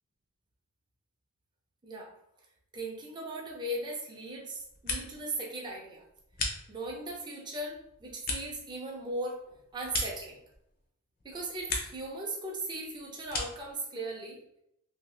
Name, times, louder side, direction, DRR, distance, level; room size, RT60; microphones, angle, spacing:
voice 1, 2.7-6.0 6.7-9.4 9.7-10.4 11.2-14.4, right 2 dB, 20° right, -2 dB, 0.6 m, -38 dB
sound 1, 4.5-5.4 5.7-7.1 7.5-10.8 11.2-12.1 12.4-13.7, left 3 dB, 40° left, 0.6 m, -38 dB
2.7 x 2.7 x 3.2 m, 0.78 s
head